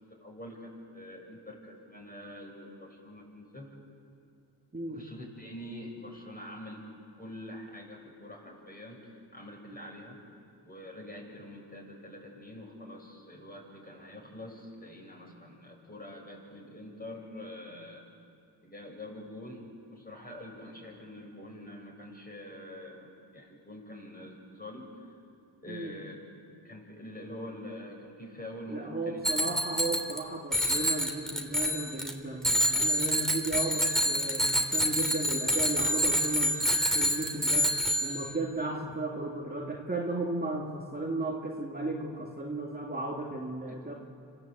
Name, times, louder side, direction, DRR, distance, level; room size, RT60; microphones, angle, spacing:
voice 1, 0.2-3.7 4.9-6.8 7.2-10.2 10.6-18.0 18.6-19.6 19.9-24.9 25.6-26.2 26.6-29.2 43.7-44.0, left 1 dB, 20° left, -1 dB, 7.1 m, -45 dB
voice 2, 4.7-5.0 25.7-26.0 28.7-36.6 36.9-37.7 38.0-43.9, right 2 dB, 20° right, -2 dB, 2.3 m, -35 dB
Bicycle bell, 29.2-30.2 30.5-32.1 32.4-38.3, equal, ahead, 3.0 m, -27 dB
26.0 x 15.0 x 8.2 m, 2.4 s
supercardioid pair, 45°, 48 cm